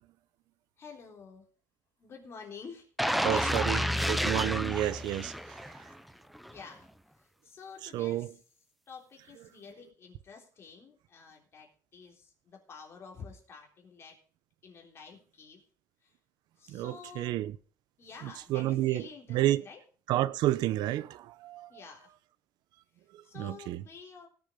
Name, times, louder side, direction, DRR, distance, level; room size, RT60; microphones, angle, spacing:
voice 1, 0.8-1.5 2.0-4.3 6.1-6.2 6.5-6.9 7.2-8.4 8.9-14.2 14.6-15.6 16.0-16.1 16.6-17.4 18.0-19.8 21.7-22.1 22.9-24.3, left 5 dB, 35° left, 3.5 m, -49 dB
sound 1, 3.0-5.9 6.3-6.5, equal, ahead, 0.6 m, -30 dB
voice 2, 3.2-3.8 4.1-5.6 7.9-8.3 16.7-17.5 18.5-19.0 19.3-19.6 20.1-21.7 23.4-23.8, right 14 dB, 90° right, 0.7 m, -30 dB
18.0 x 7.1 x 5.1 m
cardioid pair, 155°, 7 cm